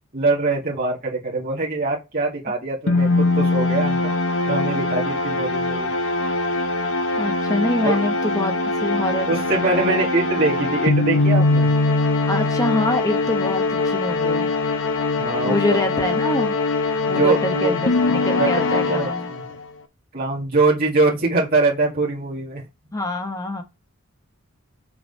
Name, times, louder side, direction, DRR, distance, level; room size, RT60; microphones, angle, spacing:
voice 1, 0.1-4.1 4.4-5.9 7.8-8.0 9.3-11.7 15.2-15.6 17.2-17.8 18.4-19.4 20.1-22.6, right 3 dB, 45° right, 2.0 m, -23 dB
sound 1, 2.9-19.6, left 3 dB, 60° left, 0.8 m, -22 dB
voice 2, 7.2-9.9 12.3-14.5 15.5-16.5 17.1-19.3 22.9-23.6, left 1 dB, 15° left, 1.1 m, -25 dB
5.9 x 3.9 x 5.5 m
head